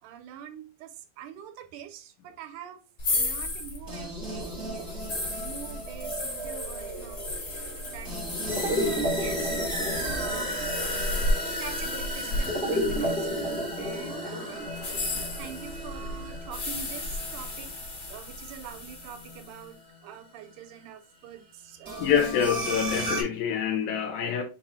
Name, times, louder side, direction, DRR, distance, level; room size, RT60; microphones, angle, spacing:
voice 1, 0.0-2.8 3.1-7.2 7.5-9.7 10.0-11.1 11.6-15.0 15.4-17.7 18.1-22.3, right 9 dB, 85° right, 2.1 m, -45 dB
sound 1, 3.0-14.0 14.7-19.5, left 2 dB, 45° left, 1.4 m, -34 dB
sound 2, 3.9-20.0 21.8-23.2, equal, 20° right, 0.6 m, -33 dB
voice 2, 22.0-24.4, left 8 dB, 80° left, 2.1 m, -26 dB
5.4 x 2.4 x 4.1 m
omnidirectional pair, 3.6 m